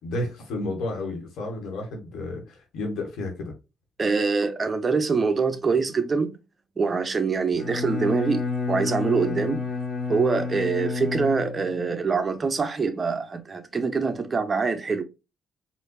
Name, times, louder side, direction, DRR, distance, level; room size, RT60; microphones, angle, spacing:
voice 1, 0.0-3.5, left 2 dB, 75° left, 1.6 m, -31 dB
voice 2, 4.0-6.4 6.8-9.7 10.1-15.0, right 4 dB, 35° right, 0.7 m, -24 dB
Bowed string instrument, 7.5-11.8, left 4 dB, 55° left, 1.5 m, -29 dB
4.4 x 2.6 x 2.3 m
cardioid pair, 90°, 0 cm